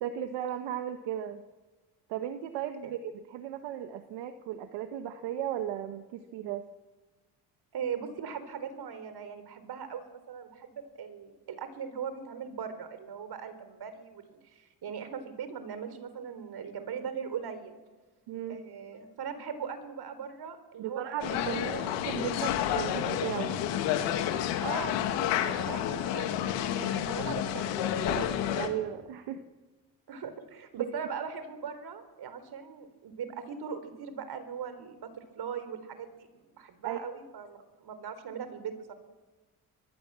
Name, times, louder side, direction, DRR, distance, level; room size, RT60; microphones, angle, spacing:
voice 1, 0.0-1.4 2.1-3.0 3.3-6.6 18.3-18.6 20.8-21.8 22.0-23.6 28.5-29.4 30.8-30.9 36.8-37.0, right 10 dB, 85° right, 8 dB, 1.3 m, -35 dB
voice 2, 7.7-17.8 18.5-21.9 24.6-28.3 30.1-38.9, right 7 dB, 65° right, 11 dB, 4.0 m, -40 dB
sound 1, 21.2-28.7, left 10 dB, 90° left, 2.3 m, -30 dB
24.5 x 21.0 x 7.6 m, 1.2 s
supercardioid pair, 75°, 42 cm